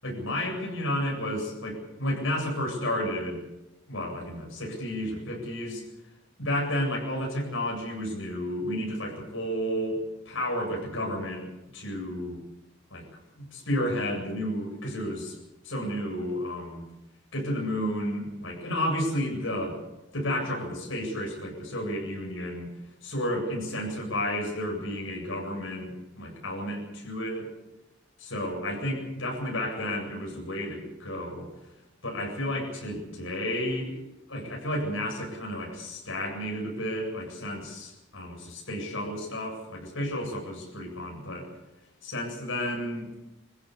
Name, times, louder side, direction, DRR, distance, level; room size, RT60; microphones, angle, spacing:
voice 1, 0.0-3.4 3.9-5.8 6.4-10.0 10.2-12.4 12.9-13.1 13.4-15.4 15.6-16.8 17.3-19.8 20.1-22.7 23.0-27.5 28.2-31.5 32.0-34.0 34.3-41.5 42.0-43.3, left 1 dB, 80° left, 0 dB, 7.9 m, -32 dB
24.0 x 15.5 x 8.3 m, 0.96 s
head